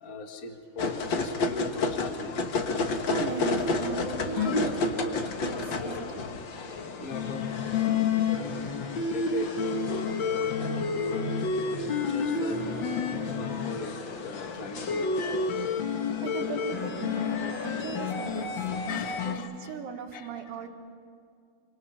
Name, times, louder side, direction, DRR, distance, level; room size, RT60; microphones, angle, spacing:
voice 1, 0.0-2.4 6.9-8.1 9.0-9.5 9.8-11.3 11.9-12.6 13.2-13.9 14.2-15.2 18.9-19.7 20.1-20.4, left 3 dB, 35° left, 4 dB, 1.5 m, -40 dB
sound 1, 0.8-19.3, left 4 dB, 55° left, 1.4 m, -29 dB
voice 2, 3.0-4.9 5.1-6.2 16.2-18.6 18.9-20.7, right 6 dB, 85° right, 5 dB, 3.2 m, -38 dB
27.0 x 26.0 x 5.7 m, 2.4 s
omnidirectional pair, 3.9 m